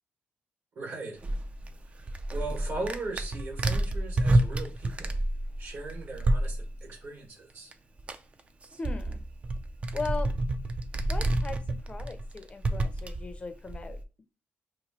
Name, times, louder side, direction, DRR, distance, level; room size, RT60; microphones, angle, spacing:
voice 1, 0.7-1.2 1.9-5.2 5.6-7.7, right 3 dB, 65° right, 0 dB, 1.4 m, -39 dB
sound 1, 1.2-6.8 7.7-7.8 8.0-14.0, right 1 dB, 30° right, 0.4 m, -29 dB
voice 2, 8.8-9.2 9.9-10.3 11.1-14.0, left 4 dB, 25° left, 9 dB, 0.5 m, -38 dB
3.0 x 2.3 x 4.0 m, 0.31 s
cardioid pair, 120°, 5 cm